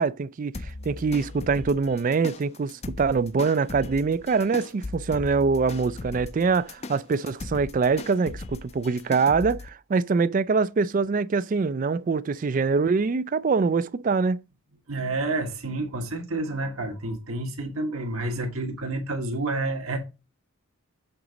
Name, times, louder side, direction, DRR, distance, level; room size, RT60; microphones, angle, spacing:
voice 1, 0.0-14.4, right 4 dB, 35° right, 0.3 m, -24 dB
sound 1, 0.5-9.7, left 2 dB, 30° left, 0.4 m, -39 dB
voice 2, 14.9-20.0, right 2 dB, 75° right, 1.8 m, -29 dB
7.9 x 4.0 x 4.9 m
head